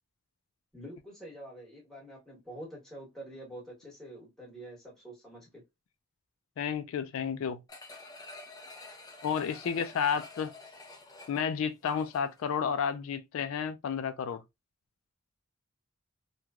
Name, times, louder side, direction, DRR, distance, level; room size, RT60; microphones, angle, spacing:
voice 1, 0.7-5.6, right 1 dB, ahead, 1.2 m, -46 dB
voice 2, 6.6-7.6 9.2-10.5 11.3-14.4, left 7 dB, 75° left, 0.3 m, -31 dB
sound 1, 7.7-12.5 12.9-13.0, left 2 dB, 20° left, 0.6 m, -49 dB
3.1 x 2.2 x 2.3 m
head